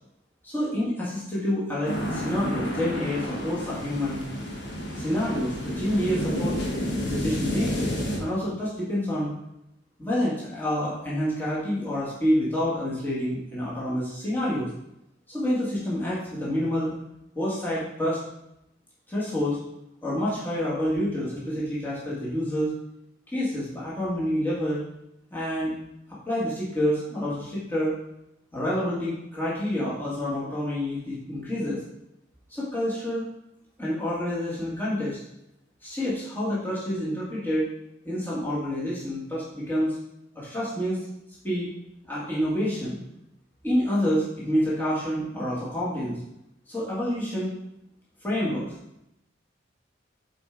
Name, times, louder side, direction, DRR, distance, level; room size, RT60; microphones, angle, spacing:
voice 1, 0.4-4.2 4.9-6.5 7.1-9.3 10.0-14.7 15.3-16.9 17.3-18.2 19.1-19.6 20.0-22.7 23.3-24.8 25.3-25.8 26.1-27.9 28.5-31.8 32.5-33.2 33.8-35.2 35.8-37.7 38.0-40.0 40.3-41.0 41.4-41.7 42.1-43.0 43.6-46.2 46.7-47.5 48.2-48.7, equal, 10° left, -8 dB, 1.6 m, -28 dB
sound 1, 1.8-8.2, equal, 65° left, 1.2 m, -30 dB
6.8 x 4.5 x 3.8 m, 0.83 s
head